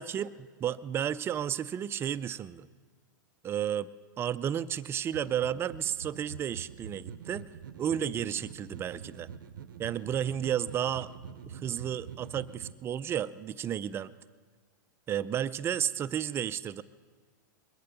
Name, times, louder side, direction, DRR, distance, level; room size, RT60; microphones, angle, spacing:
voice 1, 0.0-2.7 3.4-3.9 4.2-7.4 7.8-9.3 9.8-11.1 11.5-14.1 15.1-16.8, right 9 dB, 20° right, 15 dB, 0.4 m, -32 dB
sound 1, 5.1-12.7, right 7 dB, 85° right, 0.7 m, -45 dB
22.0 x 8.5 x 6.9 m, 1.5 s
hypercardioid pair, 130°, 11 cm